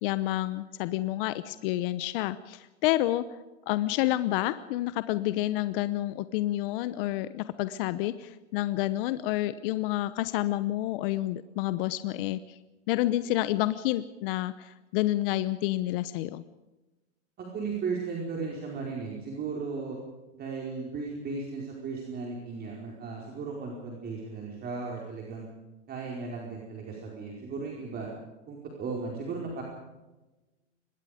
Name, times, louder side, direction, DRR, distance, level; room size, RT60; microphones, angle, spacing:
voice 1, 0.0-3.2 3.7-12.6 12.9-16.4, left 15 dB, 50° left, 14 dB, 1.0 m, -29 dB
voice 2, 17.4-20.0 20.3-25.5 25.9-28.1 28.5-29.6, right 4 dB, 25° right, -1 dB, 4.8 m, -36 dB
25.0 x 21.5 x 5.1 m, 1.1 s
hypercardioid pair, 120°, 36 cm